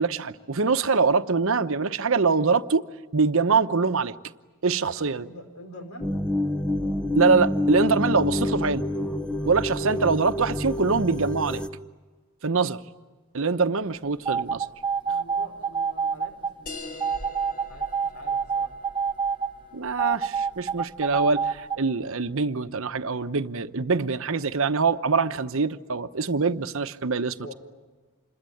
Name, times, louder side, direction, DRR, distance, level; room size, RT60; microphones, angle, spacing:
voice 1, 0.0-2.9 3.1-4.1 4.6-5.3 7.1-8.8 9.4-11.6 12.4-12.8 13.3-14.7 19.7-27.5, right 4 dB, 65° right, 0.9 m, -24 dB
voice 2, 5.0-6.1 15.0-16.3 16.6-18.7 27.4-27.6, left 1 dB, 65° left, 5.0 m, -45 dB
sound 1, 6.0-11.7, left 1 dB, 5° left, 0.8 m, -27 dB
sound 2, 14.3-16.5 17.0-19.5 20.0-21.8, right 6 dB, 20° right, 1.0 m, -27 dB
sound 3, 16.7-21.7, left 2 dB, 40° left, 4.8 m, -45 dB
27.5 x 22.0 x 9.2 m
head